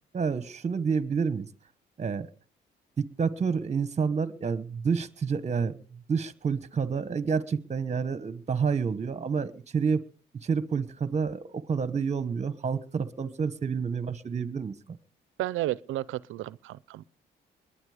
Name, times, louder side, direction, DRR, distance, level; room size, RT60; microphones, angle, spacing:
voice 1, 0.1-1.5 2.0-2.3 3.0-10.0 10.4-15.0, right 5 dB, 35° right, 1.2 m, -29 dB
voice 2, 15.4-17.0, right 15 dB, 85° right, 0.6 m, -32 dB
21.5 x 10.5 x 5.0 m
cardioid pair, 90°, 20 cm